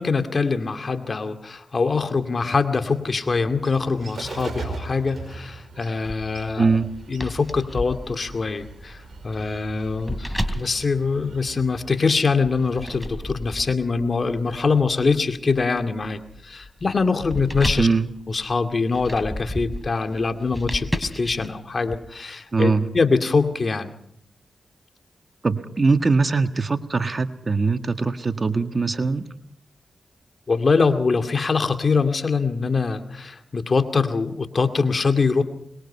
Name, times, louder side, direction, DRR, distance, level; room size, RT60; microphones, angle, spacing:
voice 1, 0.0-6.8 7.1-17.9 18.3-23.9 30.5-35.4, left 4 dB, 50° left, 7 dB, 2.3 m, -23 dB
Bird, 2.1-13.6, right 4 dB, 60° right, 5.1 m, -41 dB
sound 1, 6.0-11.9 12.4-22.0, left 1 dB, 5° left, 3.0 m, -34 dB
voice 2, 6.6-6.9 17.8-18.1 22.5-22.9 25.4-29.2, right 4 dB, 45° right, 9 dB, 1.7 m, -21 dB
22.5 x 21.5 x 5.6 m, 0.70 s
supercardioid pair, 40°, 0 cm